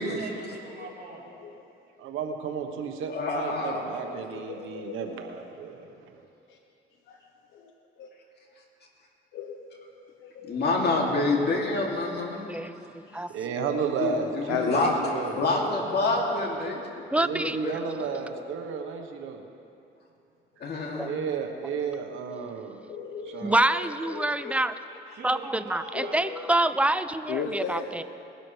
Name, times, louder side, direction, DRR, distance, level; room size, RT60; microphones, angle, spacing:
voice 1, 0.0-1.6 1.9-2.0 5.7-6.3 25.1-26.3, right 3 dB, 55° right, -5 dB, 3.5 m, -44 dB
voice 2, 2.0-5.9 13.3-15.3 17.1-19.4 21.0-22.8 23.3-23.5, right 6 dB, 85° right, 4 dB, 1.2 m, -33 dB
voice 3, 3.1-3.8 10.4-12.5 14.0-14.9 15.4-17.0 17.4-17.9 20.6-21.2 24.4-24.5, left 2 dB, 55° left, -1 dB, 2.7 m, -27 dB
voice 4, 3.7-5.2 8.0-8.1 9.3-9.6 10.1-10.9 13.1-13.2 14.5-15.6 16.1-16.3 16.6-16.9 20.6-20.7 22.9-23.7 24.0-24.5 24.9-25.1 25.9-26.6 27.3-28.0, left 5 dB, 85° left, 2 dB, 1.0 m, -36 dB
voice 5, 12.5-13.3 17.1-17.6 20.9-21.1 23.4-24.7 25.2-28.0, right 1 dB, 5° right, 12 dB, 0.5 m, -26 dB
20.5 x 12.5 x 3.3 m, 2.6 s
cardioid pair, 90°, 20 cm